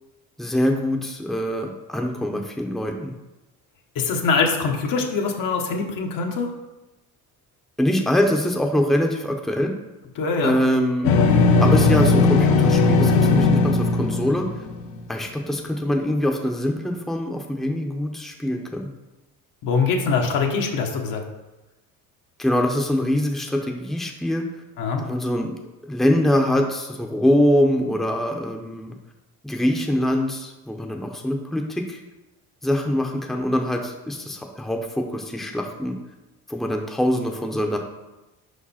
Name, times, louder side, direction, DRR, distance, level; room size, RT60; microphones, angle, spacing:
voice 1, 0.4-3.1 7.8-9.7 10.4-11.2 11.6-14.5 15.1-18.9 22.4-24.5 25.0-25.6 25.8-28.9 29.4-32.0 32.6-36.0 36.5-37.8, left 1 dB, ahead, 2 dB, 0.7 m, -23 dB
voice 2, 3.9-6.5 10.2-10.5 19.6-21.2 24.8-25.0, left 4 dB, 70° left, 1 dB, 1.2 m, -23 dB
sound 1, 11.0-15.0, left 3 dB, 90° left, 0.8 m, -18 dB
5.3 x 5.0 x 4.2 m, 1.0 s
cardioid pair, 90°, 35 cm